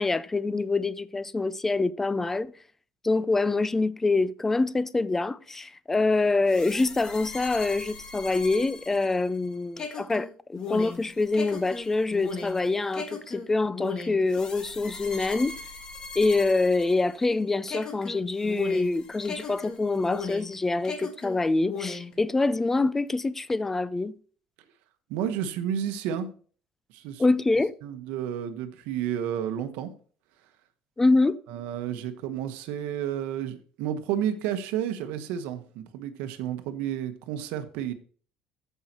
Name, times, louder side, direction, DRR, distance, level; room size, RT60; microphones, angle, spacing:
voice 1, 0.0-2.5 3.0-15.5 16.2-24.1 27.2-27.7 31.0-31.4, left 3 dB, 10° left, 0.4 m, -25 dB
sound 1, 6.5-17.3 17.7-20.6 20.8-22.2, left 5 dB, 25° left, 1.6 m, -38 dB
voice 2, 25.1-26.3 26.9-27.2 27.8-29.9 31.5-37.9, right 9 dB, 80° right, 1.1 m, -31 dB
14.0 x 5.6 x 2.9 m
cardioid pair, 150°, 3 cm